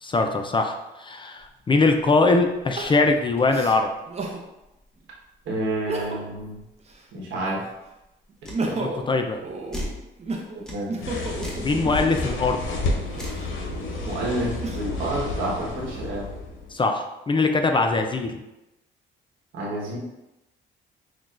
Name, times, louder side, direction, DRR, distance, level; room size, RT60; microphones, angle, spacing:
voice 1, 0.0-3.9 8.7-9.4 11.6-12.6 16.7-18.4, left 3 dB, 25° left, 5 dB, 0.4 m, -22 dB
Crying sobbing, 1.4-1.5 2.7-4.4 5.0-5.1 5.7-6.4 6.8-7.8 8.3-12.3 13.0-15.1 15.6-16.5, right 3 dB, 35° right, 0.6 m, -34 dB
voice 2, 5.4-6.6 7.1-7.6 10.7-10.9 14.0-16.3 19.5-20.0, right 1 dB, 80° right, -3 dB, 1.2 m, -29 dB
sound 1, 8.4-8.6 9.7-10.0 10.7-10.8 11.4-11.7 12.1-12.2 13.1-13.4, left 1 dB, 5° left, 0.9 m, -34 dB
sound 2, 11.0-16.8, left 3 dB, 75° left, 0.7 m, -31 dB
6.0 x 2.3 x 2.4 m, 0.95 s
cardioid pair, 90°, 20 cm